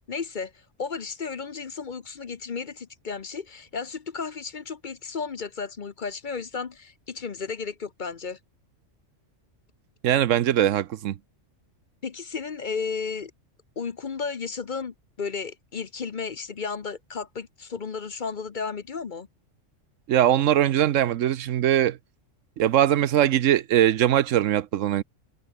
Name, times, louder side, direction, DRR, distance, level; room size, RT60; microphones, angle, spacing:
voice 1, 0.1-0.5 0.8-8.4 12.0-13.3 13.8-19.3, left 5 dB, 45° left, 0.9 m, -33 dB
voice 2, 10.0-11.2 20.1-22.0 22.6-25.0, right 11 dB, 80° right, 1.1 m, -21 dB
omnidirectional pair, 1.3 m